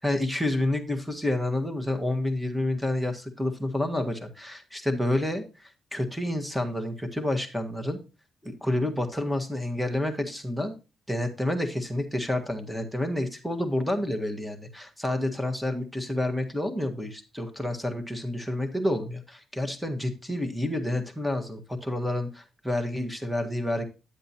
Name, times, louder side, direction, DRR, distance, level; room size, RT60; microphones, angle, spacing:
voice 1, 0.0-8.0 8.4-10.7 11.1-23.8, left 1 dB, ahead, 6 dB, 1.7 m, -29 dB
10.0 x 7.8 x 2.8 m, 0.30 s
cardioid pair, 90°, 0 cm